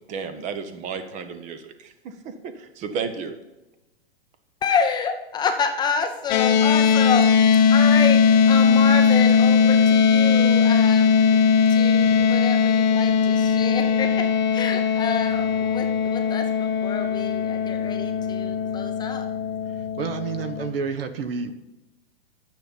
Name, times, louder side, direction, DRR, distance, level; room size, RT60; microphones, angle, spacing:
voice 1, 0.1-3.3, right 6 dB, 25° right, 10 dB, 0.9 m, -33 dB
voice 2, 4.6-7.3 7.7-11.4 11.7-14.1 14.5-19.3, left 6 dB, 15° left, 5 dB, 0.5 m, -28 dB
sound 1, 6.3-20.7, left 6 dB, 50° left, 1.0 m, -19 dB
voice 3, 20.0-21.5, right 6 dB, 70° right, 9 dB, 1.2 m, -29 dB
9.7 x 7.4 x 5.3 m, 1.0 s
hypercardioid pair, 140°, 30 cm